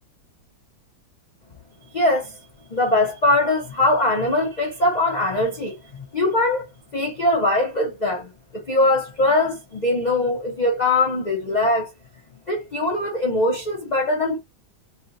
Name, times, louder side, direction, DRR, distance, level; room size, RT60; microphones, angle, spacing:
voice 1, 1.9-2.4 2.7-6.7 6.9-8.3 8.7-11.9 12.5-14.4, left 2 dB, 65° left, 0.4 m, -21 dB
3.3 x 2.8 x 3.8 m
omnidirectional pair, 2.1 m